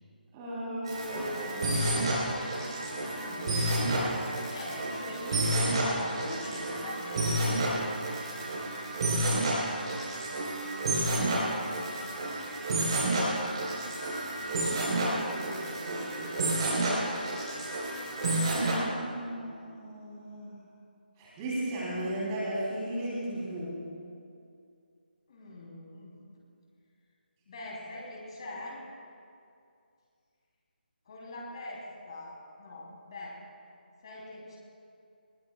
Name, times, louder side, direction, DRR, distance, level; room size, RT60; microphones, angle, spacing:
voice 1, 0.3-1.8 14.6-16.7 18.5-20.6 21.2-23.8, right 1 dB, 15° right, -7 dB, 3.4 m, -36 dB
sound 1, 0.8-18.7, right 1 dB, 35° right, 4.2 m, -30 dB
voice 2, 1.7-7.8 25.3-26.4 27.5-28.8 31.0-33.4 34.0-34.6, left 1 dB, 35° left, -3 dB, 3.3 m, -43 dB
20.5 x 19.0 x 2.4 m, 2.4 s
figure-of-eight pair, 150°, 5 cm